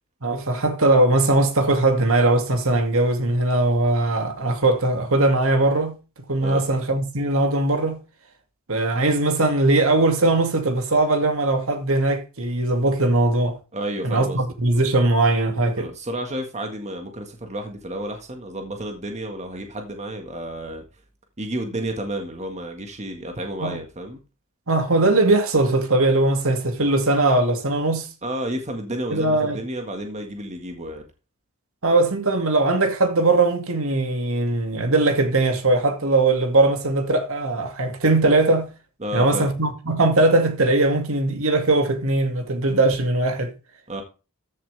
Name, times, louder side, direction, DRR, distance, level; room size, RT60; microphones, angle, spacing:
voice 1, 0.2-6.0 6.3-8.0 8.7-13.6 14.0-15.9 23.6-23.8 24.7-28.1 29.1-29.6 31.8-38.7 39.1-43.5, right 2 dB, 70° right, 2.3 m, -20 dB
voice 2, 13.7-14.5 15.7-20.8 21.4-24.2 28.2-31.0 39.0-39.5 43.9-44.0, right 1 dB, 30° right, 1.7 m, -31 dB
14.0 x 7.6 x 3.4 m
head